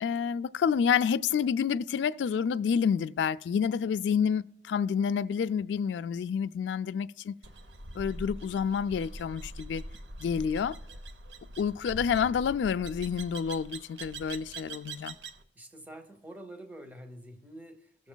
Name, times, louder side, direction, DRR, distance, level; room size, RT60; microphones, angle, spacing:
voice 1, 0.0-7.3 7.9-9.8 10.2-10.8 11.6-15.2, left 7 dB, 80° left, 0.3 m, -29 dB
sound 1, 7.4-15.4, right 2 dB, 80° right, 0.6 m, -43 dB
voice 2, 15.5-18.1, right 1 dB, 10° right, 0.8 m, -47 dB
17.0 x 7.0 x 2.2 m
head